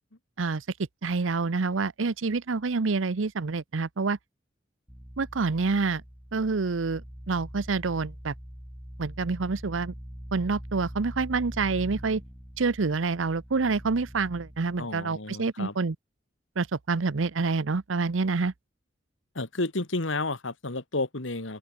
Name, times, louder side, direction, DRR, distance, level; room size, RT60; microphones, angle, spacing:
voice 1, 1.0-4.2 5.2-6.0 6.3-7.0 7.3-8.3 9.0-9.9 10.3-12.2 12.6-16.0 16.6-18.5, right 4 dB, 85° right, 0.7 m, -27 dB
sound 1, 4.9-14.8, equal, 5° right, 6.4 m, -43 dB
voice 2, 14.8-15.8 19.3-21.6, left 2 dB, 75° left, 2.3 m, -31 dB
open air
head